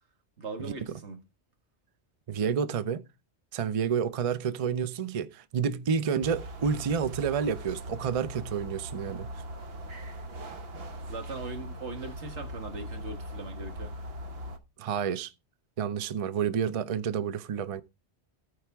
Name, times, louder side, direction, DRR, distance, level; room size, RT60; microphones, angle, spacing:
voice 1, 0.4-1.2 11.0-13.9, right 3 dB, 85° right, 1.8 m, -40 dB
voice 2, 2.3-3.0 3.5-9.3 14.8-15.3 15.8-17.8, right 7 dB, 40° right, 0.5 m, -29 dB
sound 1, 6.2-14.6, equal, 65° right, 1.2 m, -40 dB
13.5 x 4.8 x 3.5 m
omnidirectional pair, 1.1 m